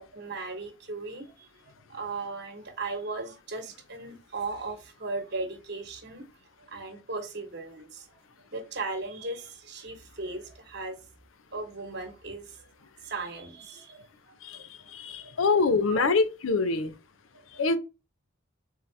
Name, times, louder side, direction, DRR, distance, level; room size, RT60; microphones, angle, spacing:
voice 1, 0.0-6.2 6.7-8.2 8.5-11.0 11.5-12.7 13.0-14.7 15.2-15.3 15.9-16.1 17.3-17.6, right 3 dB, 55° right, 1.2 m, -37 dB
voice 2, 14.9-16.9 17.6-17.8, left 4 dB, 80° left, 0.6 m, -25 dB
4.1 x 3.7 x 3.3 m
head